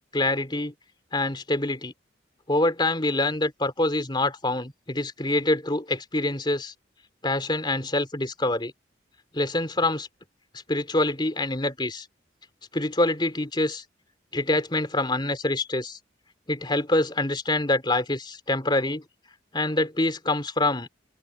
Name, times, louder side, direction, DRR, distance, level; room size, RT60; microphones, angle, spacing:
voice 1, 0.1-0.7 1.1-1.9 2.5-6.7 7.2-8.7 9.3-10.1 10.7-12.1 12.7-13.8 14.3-16.0 16.5-19.0 19.5-20.9, left 2 dB, 25° left, 3.0 m, -25 dB
open air
head